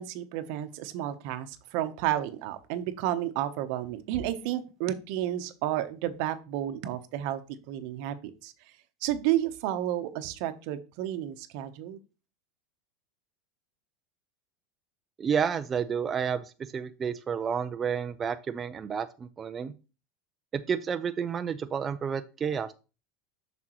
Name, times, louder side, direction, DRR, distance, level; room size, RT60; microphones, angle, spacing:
voice 1, 0.0-7.4 7.7-8.1 8.4-8.5 9.0-12.0, right 12 dB, 65° right, 11 dB, 0.8 m, -31 dB
voice 2, 15.2-19.7 20.5-22.7, right 7 dB, 25° right, 9 dB, 0.4 m, -30 dB
7.4 x 5.9 x 3.0 m, 0.32 s
supercardioid pair, 120°, 0 cm